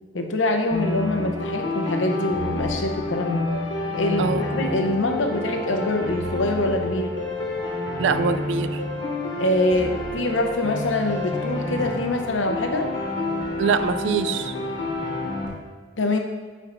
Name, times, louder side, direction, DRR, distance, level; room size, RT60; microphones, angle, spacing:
voice 1, 0.1-3.5 3.9-7.1 9.3-12.9 16.0-16.2, left 1 dB, 90° left, 4 dB, 0.7 m, -24 dB
sound 1, 0.7-15.5, left 2 dB, 70° left, 1.3 m, -29 dB
voice 2, 8.0-8.8 13.6-14.5, right 5 dB, 70° right, 12 dB, 0.3 m, -23 dB
8.7 x 4.5 x 2.5 m, 1.5 s
head